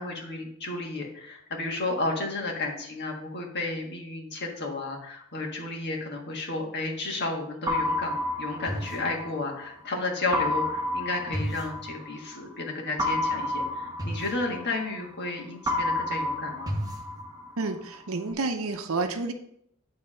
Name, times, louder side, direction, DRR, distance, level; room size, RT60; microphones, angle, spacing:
voice 1, 0.0-16.8, left 2 dB, 55° left, 0 dB, 1.6 m, -32 dB
sound 1, 7.7-9.7 10.3-12.4 13.0-15.3 15.7-17.7, left 1 dB, 20° right, 0.9 m, -30 dB
voice 2, 17.6-19.3, right 3 dB, 80° right, 6 dB, 0.7 m, -30 dB
9.5 x 3.5 x 5.5 m, 0.72 s
head